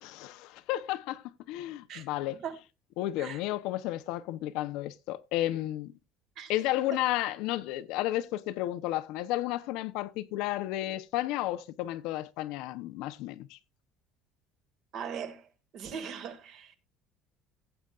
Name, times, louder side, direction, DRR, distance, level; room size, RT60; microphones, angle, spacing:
voice 1, 0.0-1.2 1.5-2.4 3.0-5.9 6.5-13.6, left 15 dB, 60° left, 0.7 m, -32 dB
voice 2, 14.9-15.4 15.7-16.8, right 7 dB, 40° right, 1.6 m, -39 dB
17.0 x 7.9 x 2.4 m
cardioid pair, 180°, 0 cm